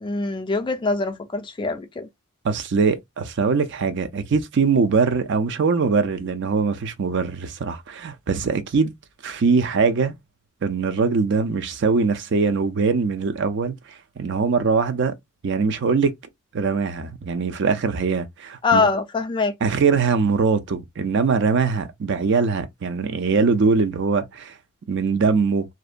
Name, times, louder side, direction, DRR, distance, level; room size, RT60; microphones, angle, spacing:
voice 1, 0.0-2.1 18.6-19.5, left 4 dB, 20° left, 0.4 m, -23 dB
voice 2, 2.4-8.9 9.2-10.1 10.6-13.8 14.2-15.1 15.4-16.1 16.5-18.9 19.6-24.5 24.9-25.6, right 5 dB, 55° right, 0.4 m, -22 dB
2.7 x 2.1 x 2.4 m
head